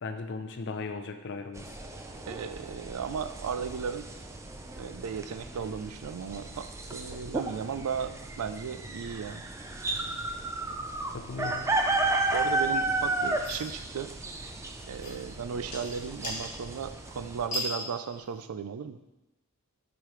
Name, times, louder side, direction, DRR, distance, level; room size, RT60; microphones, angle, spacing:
voice 1, 0.0-1.7 11.1-11.7, left 4 dB, 55° left, 8 dB, 0.5 m, -37 dB
sound 1, 1.5-17.5, right 2 dB, 15° right, 0.4 m, -33 dB
voice 2, 2.3-4.1 4.8-9.4 12.3-14.1 14.9-19.0, right 6 dB, 80° right, 10 dB, 0.4 m, -35 dB
sound 2, 12.8-18.4, left 1 dB, 35° left, 2.5 m, -41 dB
8.3 x 5.0 x 3.1 m, 1.0 s
head